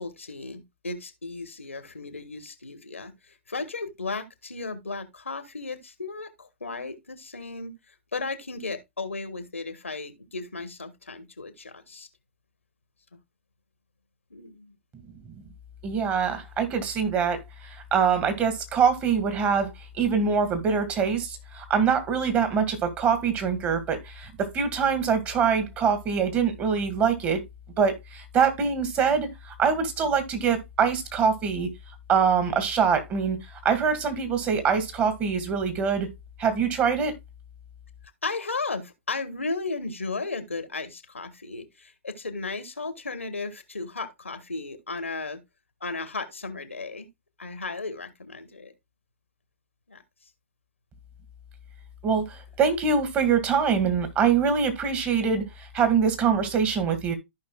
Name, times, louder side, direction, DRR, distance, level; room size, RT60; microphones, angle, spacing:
voice 1, 0.0-7.7 8.1-12.1 14.3-14.7 38.2-45.4 45.8-47.1 47.4-48.7 49.9-50.0, left 3 dB, 85° left, 1.4 m, -35 dB
voice 2, 15.8-27.4 27.8-31.7 32.1-33.4 33.6-36.1 36.4-37.1 52.0-57.2, right 6 dB, 25° right, 1.9 m, -24 dB
14.0 x 5.3 x 2.3 m
figure-of-eight pair, 115°, 7 cm